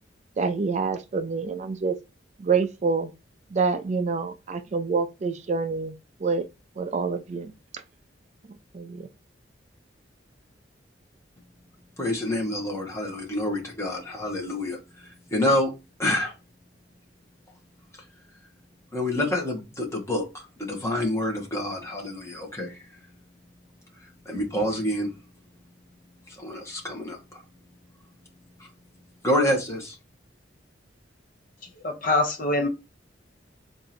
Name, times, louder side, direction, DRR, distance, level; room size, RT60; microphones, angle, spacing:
voice 1, 0.4-2.0 2.4-3.1 3.5-5.9 6.2-6.4 6.8-7.5 8.7-9.0, right 5 dB, 40° right, 0.4 m, -26 dB
voice 2, 12.0-15.7 16.0-16.3 18.9-22.8 24.2-25.1 26.3-27.4 28.6-28.7 29.2-30.0, left 1 dB, 15° left, 1.2 m, -27 dB
voice 3, 31.8-32.7, left 2 dB, 50° left, 0.8 m, -24 dB
3.8 x 2.6 x 4.3 m
head